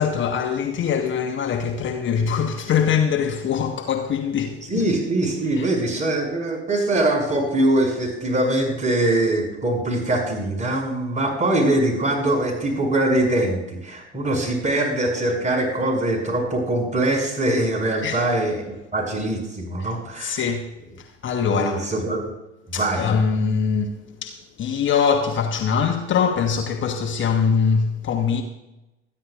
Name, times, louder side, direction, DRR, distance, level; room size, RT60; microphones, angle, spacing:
voice 1, 0.0-4.8 18.0-18.2 19.8-19.9 20.2-20.7 21.2-21.9 22.7-28.4, left 6 dB, 35° left, 1.2 m, -23 dB
voice 2, 4.6-20.5 21.5-22.3 22.7-23.1, right 1 dB, 20° right, 6.1 m, -23 dB
27.0 x 10.5 x 2.5 m
figure-of-eight pair, 70°, 35 cm